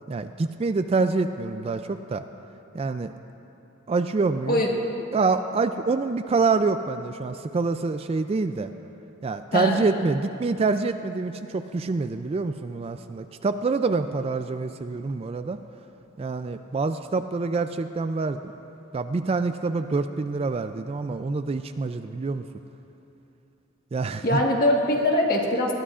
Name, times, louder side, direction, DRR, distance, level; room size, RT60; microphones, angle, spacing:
voice 1, 0.1-2.2 2.7-3.1 3.9-4.6 5.1-8.7 9.2-15.6 16.2-18.5 18.9-22.5 23.9-24.4, right 4 dB, 30° right, 9 dB, 0.3 m, -26 dB
voice 2, 9.5-9.9 24.2-25.7, left 1 dB, 45° left, 0 dB, 1.5 m, -22 dB
20.5 x 13.5 x 2.5 m, 3.0 s
head